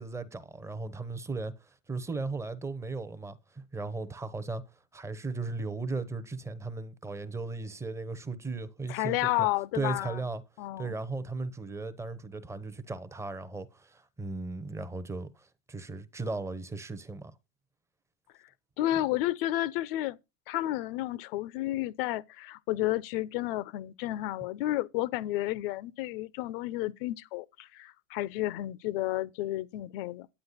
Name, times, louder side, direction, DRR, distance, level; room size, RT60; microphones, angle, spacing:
voice 1, 0.0-1.5 1.9-4.6 4.9-9.5 9.7-10.4 10.8-17.3, right 3 dB, 5° right, 0.8 m, -36 dB
voice 2, 8.9-10.2 10.6-10.9 18.8-20.2 20.5-30.3, left 15 dB, 45° left, 0.7 m, -31 dB
9.9 x 8.9 x 4.0 m
supercardioid pair, 140°, 39 cm